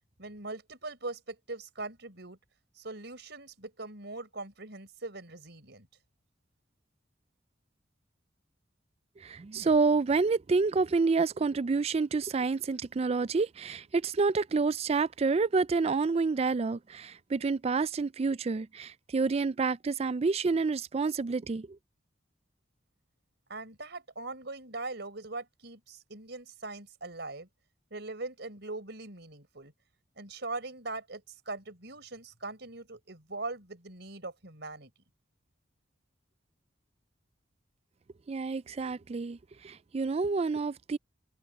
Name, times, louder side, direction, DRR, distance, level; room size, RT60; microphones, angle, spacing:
voice 1, 0.2-2.4 2.8-5.9 23.5-27.5 27.9-29.7 30.2-34.9, right 3 dB, 65° right, 5.7 m, -41 dB
voice 2, 9.2-21.8 38.3-41.0, right 4 dB, 35° right, 0.4 m, -28 dB
head